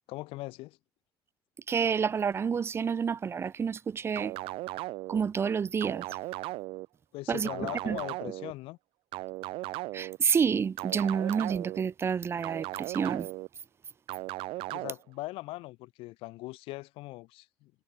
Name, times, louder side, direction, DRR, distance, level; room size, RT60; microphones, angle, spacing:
voice 1, 0.1-0.8 7.1-8.8 14.7-17.7, left 20 dB, 85° left, 6.1 m, -40 dB
voice 2, 1.7-4.4 5.1-6.1 7.3-8.0 9.9-13.3, right 6 dB, 25° right, 1.4 m, -29 dB
sound 1, 4.2-5.2 5.8-6.9 7.5-8.5 9.1-10.2 10.8-11.8 12.4-13.5 14.1-14.9, right 19 dB, 75° right, 1.9 m, -37 dB
cardioid pair, 155°, 9 cm